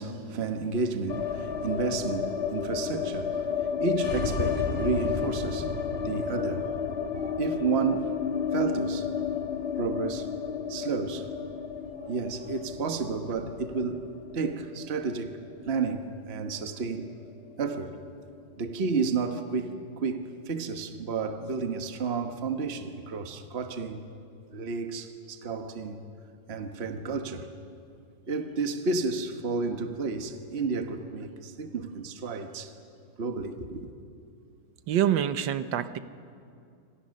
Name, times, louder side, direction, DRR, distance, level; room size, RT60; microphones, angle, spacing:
voice 1, 0.0-5.7 6.0-6.7 7.1-8.2 8.5-9.1 9.8-10.3 10.7-11.3 11.9-14.0 14.3-17.1 17.6-18.0 18.6-24.0 24.5-26.0 26.5-27.5 28.3-32.7 33.2-33.9, right 4 dB, 35° right, 1.4 m, -31 dB
sound 1, 1.1-17.2 17.4-17.5 17.8-18.5, left 6 dB, 35° left, 1.5 m, -32 dB
voice 2, 34.9-36.0, right 10 dB, 80° right, 1.6 m, -26 dB
27.5 x 26.0 x 6.5 m
omnidirectional pair, 2.0 m